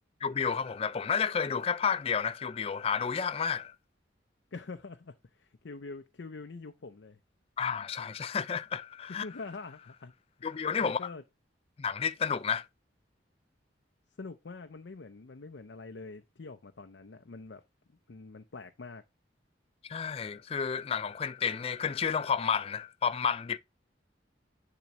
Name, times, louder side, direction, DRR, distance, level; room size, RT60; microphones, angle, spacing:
voice 1, 0.2-3.7 7.6-9.3 10.4-11.0 11.8-12.7 19.9-23.6, left 6 dB, 30° left, 0.3 m, -31 dB
voice 2, 4.5-7.2 9.1-10.1 10.8-11.2 14.2-17.6 17.9-19.0, left 3 dB, 70° left, 0.6 m, -45 dB
10.5 x 3.9 x 2.9 m
head